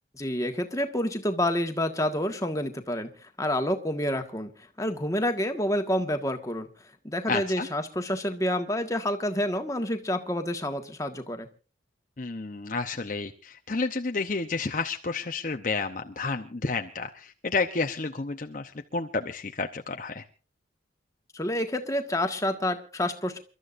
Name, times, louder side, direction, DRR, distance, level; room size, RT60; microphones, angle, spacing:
voice 1, 0.1-3.1 3.4-4.5 4.8-6.7 7.0-11.5 21.3-23.4, left 1 dB, 15° left, 5 dB, 1.6 m, -28 dB
voice 2, 7.3-7.7 12.2-20.2, left 4 dB, 45° left, 5 dB, 0.8 m, -31 dB
29.0 x 13.0 x 2.6 m, 0.37 s
head